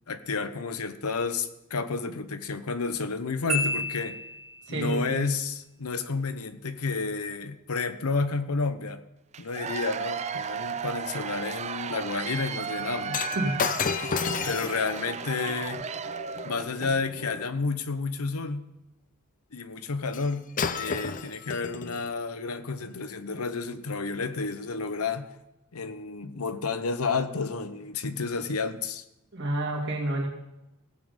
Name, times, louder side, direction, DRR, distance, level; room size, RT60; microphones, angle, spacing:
voice 1, 0.1-4.2 4.7-9.0 9.4-13.3 14.0-14.2 14.4-15.9 16.4-18.7 19.5-25.3 25.7-29.0, left 4 dB, 85° left, 11 dB, 0.8 m, -31 dB
Marimba xylophone, 3.5-4.9, left 1 dB, 85° right, 2.1 m, -31 dB
voice 2, 4.7-5.2 13.3-13.7 29.3-30.3, right 1 dB, 55° right, 0 dB, 2.4 m, -29 dB
Cheering / Applause / Crowd, 9.3-17.0, right 7 dB, 30° right, 0.4 m, -35 dB
Shatter, 13.1-17.5 20.1-20.3 20.6-22.1 22.8-23.0, left 6 dB, 35° left, 0.5 m, -33 dB
16.5 x 7.4 x 5.2 m, 0.92 s
head